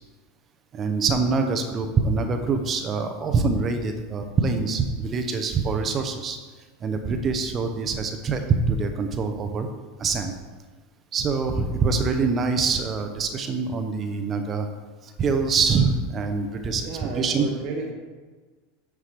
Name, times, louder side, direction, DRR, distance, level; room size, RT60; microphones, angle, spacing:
voice 1, 0.7-6.4 6.8-9.7 10.0-10.3 11.1-14.7 15.0-17.5, right 4 dB, 35° right, 6 dB, 0.7 m, -24 dB
voice 2, 16.7-17.9, right 3 dB, 60° right, -1 dB, 1.0 m, -33 dB
9.6 x 4.7 x 3.4 m, 1.3 s
hypercardioid pair, 105°, 0 cm